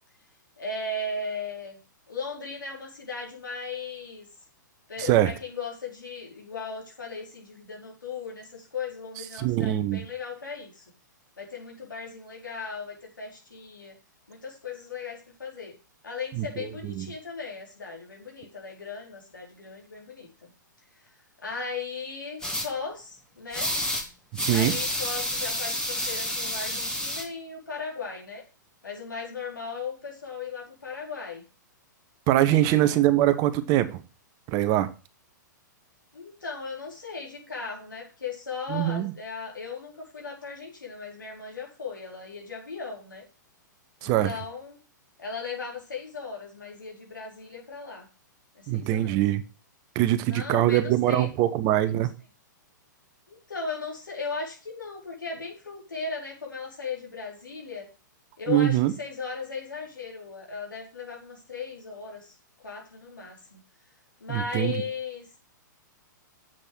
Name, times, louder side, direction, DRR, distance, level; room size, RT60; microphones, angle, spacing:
voice 1, 0.6-1.8 2.1-4.3 4.9-10.8 11.4-13.9 14.3-15.8 16.0-20.5 21.4-23.7 24.5-28.4 28.8-31.4 32.5-33.0 36.1-43.3 44.0-44.8 45.2-48.1 48.5-49.2 50.3-51.9 53.3-57.9 58.4-62.3 62.6-63.6 64.2-65.4, left 4 dB, 85° left, -1 dB, 4.3 m, -37 dB
voice 2, 5.0-5.3 9.4-10.0 16.3-17.1 24.3-24.7 32.3-34.0 34.5-34.9 38.7-39.1 44.0-44.3 48.7-49.4 49.9-52.1 58.5-58.9 64.3-64.8, right 13 dB, 35° right, 12 dB, 1.0 m, -23 dB
sound 1, 22.4-22.7 23.5-24.0 24.3-27.2, left 1 dB, 5° left, 1.9 m, -29 dB
7.7 x 6.6 x 6.2 m, 0.33 s
hypercardioid pair, 115°, 10 cm